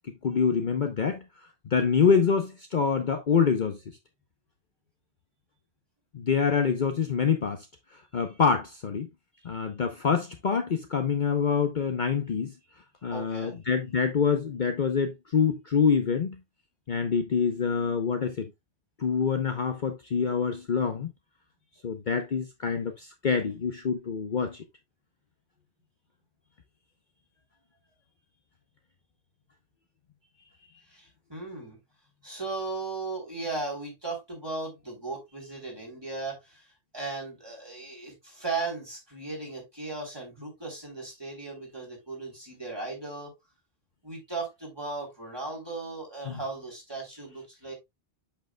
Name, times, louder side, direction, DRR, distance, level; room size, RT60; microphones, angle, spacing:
voice 1, 0.2-1.2 1.6-3.8 6.1-7.7 8.1-9.1 9.4-12.5 13.0-16.4 16.9-18.5 19.0-21.1 21.8-24.6 46.3-46.4, left 6 dB, 50° left, 0.9 m, -26 dB
voice 2, 13.0-13.6 30.4-31.8 32.2-36.7 36.9-43.3 44.0-47.7, right 3 dB, 20° right, 3.6 m, -37 dB
7.8 x 6.7 x 2.2 m
omnidirectional pair, 1.1 m